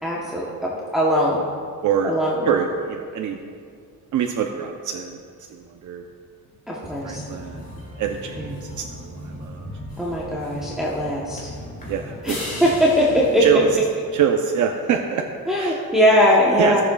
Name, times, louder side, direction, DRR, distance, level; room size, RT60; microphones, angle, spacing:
voice 1, 0.0-1.4 2.0-2.5 6.7-7.2 8.4-8.7 10.0-11.5 12.2-12.3 12.6-13.4 15.5-16.8, equal, ahead, -6 dB, 0.9 m, -20 dB
voice 2, 1.8-2.1 2.4-3.4 4.1-5.2 5.5-6.0 6.8-7.7 8.0-9.7 11.9-12.5 13.4-13.7 14.1-15.2 15.6-15.8 16.6-16.8, right 8 dB, 65° right, 3 dB, 0.6 m, -25 dB
sound 1, 6.8-13.7, left 1 dB, 25° left, 2.1 m, -36 dB
16.5 x 7.2 x 2.3 m, 2.2 s
cardioid pair, 155°, 33 cm